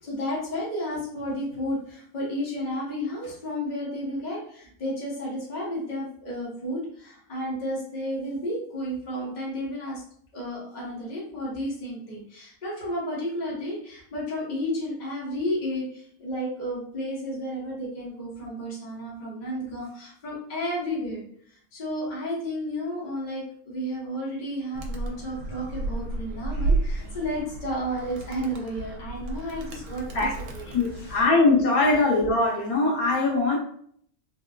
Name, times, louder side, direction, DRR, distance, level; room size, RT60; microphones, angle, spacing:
voice 1, 0.0-10.0 10.3-31.2, equal, 35° left, -5 dB, 1.0 m, -32 dB
Animal, 24.7-31.2, right 3 dB, 80° right, 1.0 m, -32 dB
voice 2, 30.7-33.6, left 3 dB, 80° left, -2 dB, 1.3 m, -21 dB
3.4 x 2.2 x 2.3 m, 0.64 s
omnidirectional pair, 1.5 m